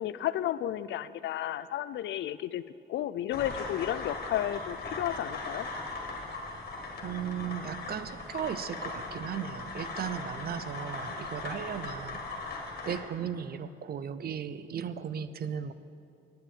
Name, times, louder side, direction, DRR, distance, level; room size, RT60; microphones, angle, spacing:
voice 1, 0.0-2.6 2.9-5.7, left 12 dB, 70° left, 16 dB, 0.4 m, -32 dB
sound 1, 3.3-13.0, left 3 dB, 50° left, 1.8 m, -39 dB
voice 2, 7.0-12.5 12.9-15.7, right 8 dB, 50° right, 14 dB, 0.6 m, -36 dB
9.2 x 7.6 x 8.5 m, 2.5 s
cardioid pair, 90°, 20 cm